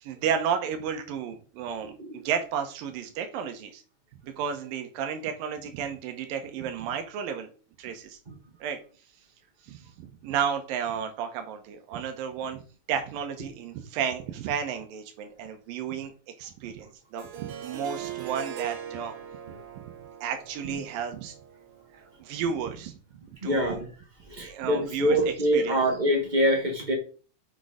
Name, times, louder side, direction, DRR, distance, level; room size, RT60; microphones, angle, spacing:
voice 1, 0.0-3.8 4.2-7.5 7.8-8.2 8.6-8.8 9.7-12.6 12.9-16.1 16.4-19.1 20.2-21.3 21.9-22.9 23.4-23.8 24.4-25.8, right 7 dB, 90° right, 6 dB, 2.7 m, -32 dB
voice 2, 1.8-2.2 8.3-8.4 19.5-19.6 20.6-20.8 23.4-23.9 24.2-26.9, equal, 50° right, 2 dB, 0.5 m, -25 dB
Harp, 17.2-22.1, right 9 dB, 75° right, 1.2 m, -40 dB
6.9 x 6.4 x 4.9 m, 0.38 s
omnidirectional pair, 3.9 m